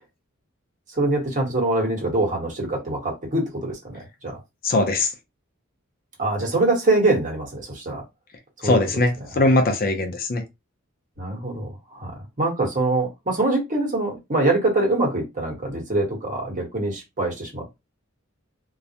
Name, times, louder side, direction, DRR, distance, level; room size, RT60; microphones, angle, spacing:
voice 1, 0.9-4.4 6.2-8.0 8.6-9.5 11.2-12.1 12.4-17.8, right 2 dB, 40° right, 1.0 m, -24 dB
voice 2, 4.6-5.1 8.6-10.4, left 2 dB, 45° left, 0.5 m, -20 dB
2.3 x 2.0 x 2.7 m
head